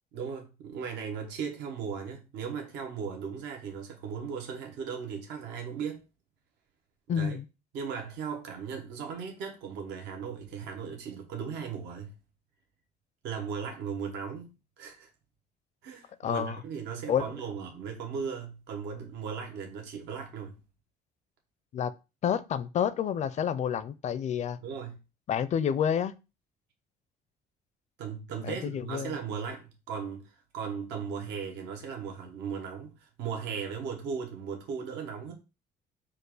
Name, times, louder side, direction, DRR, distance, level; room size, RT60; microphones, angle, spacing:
voice 1, 0.1-6.0 7.2-7.4 7.7-12.1 13.2-15.1 15.8-20.5 24.6-25.0 28.0-35.3, right 6 dB, 85° right, 1.2 m, -37 dB
voice 2, 7.1-7.4 16.2-16.6 17.1-17.2 21.7-21.9 22.2-24.6 25.3-26.1 28.4-29.1, left 8 dB, 45° left, 0.4 m, -29 dB
4.5 x 2.5 x 4.8 m
cardioid pair, 110°, 17 cm